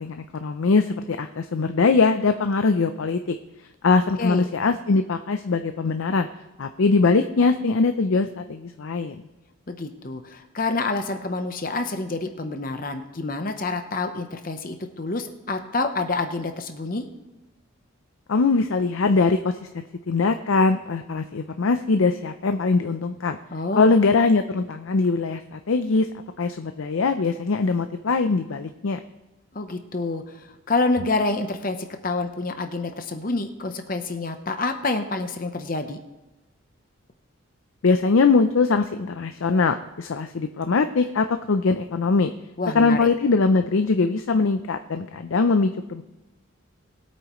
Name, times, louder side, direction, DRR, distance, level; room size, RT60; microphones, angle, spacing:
voice 1, 0.0-3.4 3.8-6.3 6.6-9.2 18.3-23.4 23.8-26.1 26.4-29.0 37.8-42.3 42.7-46.0, left 4 dB, 70° left, 8 dB, 0.5 m, -22 dB
voice 2, 9.7-17.0 23.5-23.9 29.5-30.2 30.7-31.8 32.0-36.0 42.6-43.1, left 3 dB, 40° left, 7 dB, 0.8 m, -27 dB
21.0 x 8.6 x 3.1 m, 1.0 s
head